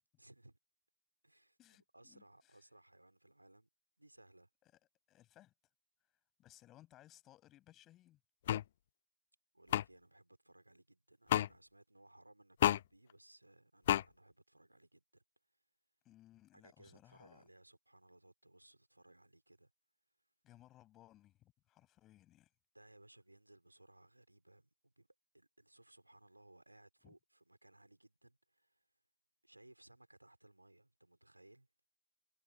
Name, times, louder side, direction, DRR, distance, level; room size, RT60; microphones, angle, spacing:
voice 1, 0.2-0.6 1.2-3.7 4.0-4.5 9.5-15.2 16.5-19.7 22.7-25.1 25.3-28.8 29.4-31.7, right 1 dB, 85° right, 5.0 m, -63 dB
voice 2, 1.6-2.6 5.1-5.5 6.4-8.2 16.0-17.5 20.4-22.5 27.0-27.1, left 14 dB, 35° left, 7.8 m, -63 dB
sound 1, 8.5-8.6 9.7-9.8 11.3-11.5 12.6-12.8 13.9-14.0, left 11 dB, 60° left, 0.3 m, -29 dB
figure-of-eight pair, 90°, 0 cm